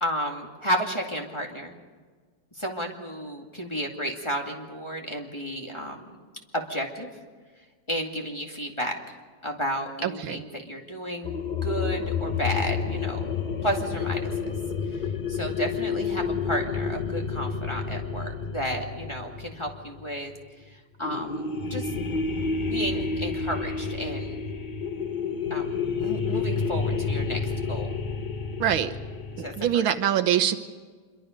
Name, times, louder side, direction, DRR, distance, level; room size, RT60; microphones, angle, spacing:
voice 1, 0.0-1.7 2.6-6.1 6.5-7.1 7.9-9.2 9.4-11.4 11.6-13.3 13.6-14.3 15.3-20.3 21.0-21.9 22.6-24.4 25.5-27.4 27.7-27.9 29.3-29.8, equal, 15° left, 1 dB, 2.1 m, -32 dB
voice 2, 10.0-10.4 28.6-28.9 29.4-30.6, right 10 dB, 90° right, 9 dB, 1.9 m, -24 dB
sound 1, 11.2-20.3 21.0-29.7, left 5 dB, 40° left, 0.6 m, -30 dB
26.0 x 23.5 x 5.2 m, 1.5 s
omnidirectional pair, 2.2 m